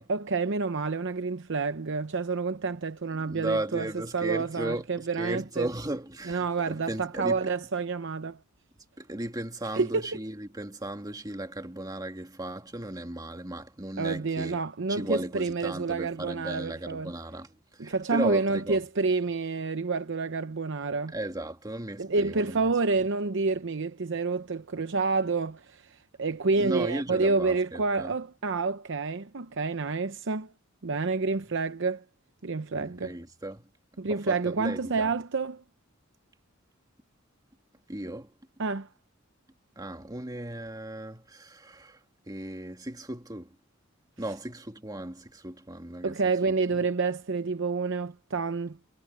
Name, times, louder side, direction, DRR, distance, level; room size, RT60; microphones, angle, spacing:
voice 1, 0.0-3.9 4.1-5.7 6.3-8.4 9.7-10.0 14.0-17.1 17.8-21.2 22.0-30.5 30.8-32.0 32.4-33.1 34.0-35.6 38.6-38.9 46.0-48.8, right 4 dB, 60° right, 0.8 m, -28 dB
voice 2, 3.2-7.5 9.0-14.6 14.9-18.8 21.1-22.6 26.6-28.2 32.7-33.7 34.1-35.1 37.9-38.3 39.8-43.6 44.2-46.2 46.7-46.8, right 1 dB, 20° right, 2.0 m, -36 dB
head